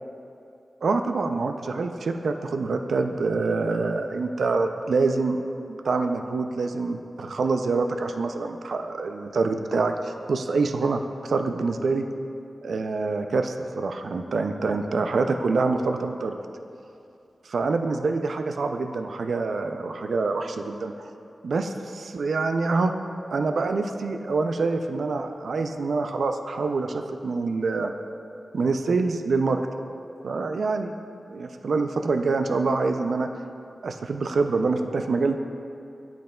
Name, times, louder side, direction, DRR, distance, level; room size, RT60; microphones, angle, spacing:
voice 1, 0.8-5.4 5.8-12.1 12.6-16.4 17.5-20.9 21.4-22.9 23.3-27.9 28.5-29.6 30.2-30.9 31.3-33.3 33.8-35.4, right 3 dB, 90° right, 6 dB, 0.3 m, -26 dB
8.9 x 7.7 x 2.2 m, 2.5 s
wide cardioid pair, 100°, 0 cm